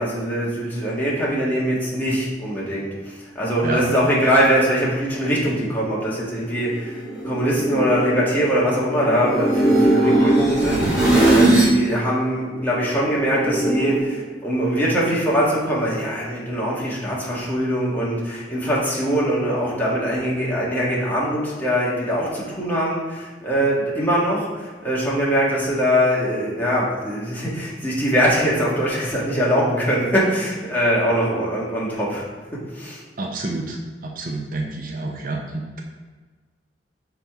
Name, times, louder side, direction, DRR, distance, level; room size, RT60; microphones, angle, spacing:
voice 1, 0.0-2.9 3.4-32.3 32.7-33.0, equal, 10° left, -6 dB, 1.8 m, -22 dB
sound 1, 6.5-11.8 12.1-14.0, right 1 dB, 5° right, 2.0 m, -20 dB
voice 2, 33.2-33.8 34.0-35.8, right 2 dB, 50° right, 1 dB, 0.7 m, -28 dB
5.8 x 4.1 x 4.7 m, 1.4 s
head